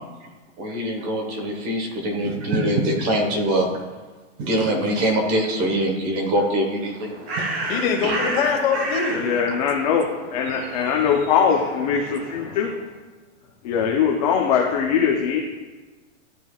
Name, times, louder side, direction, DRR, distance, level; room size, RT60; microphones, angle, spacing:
voice 1, 0.6-3.7 4.4-7.1 7.3-7.4 8.0-8.2, right 1 dB, 30° right, 1 dB, 1.3 m, -23 dB
Bird, 6.7-12.8, right 2 dB, 55° right, 2.0 m, -32 dB
voice 2, 7.7-9.2, left 6 dB, 55° left, 2 dB, 1.5 m, -23 dB
voice 3, 9.1-12.7 13.6-15.4, left 7 dB, 30° left, 0 dB, 0.6 m, -21 dB
12.5 x 4.5 x 2.3 m, 1.3 s
supercardioid pair, 170°, 37 cm